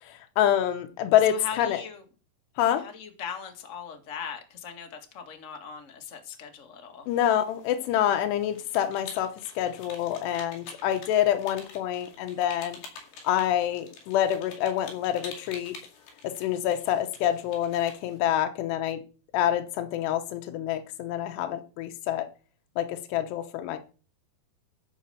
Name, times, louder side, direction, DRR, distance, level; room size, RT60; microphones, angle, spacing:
voice 1, 0.0-1.8 2.6-2.8 7.1-12.8 13.2-15.8 16.2-19.0 19.3-22.3 22.8-23.8, left 11 dB, 85° left, 6 dB, 3.1 m, -27 dB
voice 2, 1.3-2.0 2.7-7.1, left 7 dB, 40° left, 5 dB, 1.1 m, -40 dB
sound 1, 7.1-18.2, left 4 dB, 70° left, 4.2 m, -47 dB
13.5 x 5.1 x 6.9 m, 0.35 s
omnidirectional pair, 4.7 m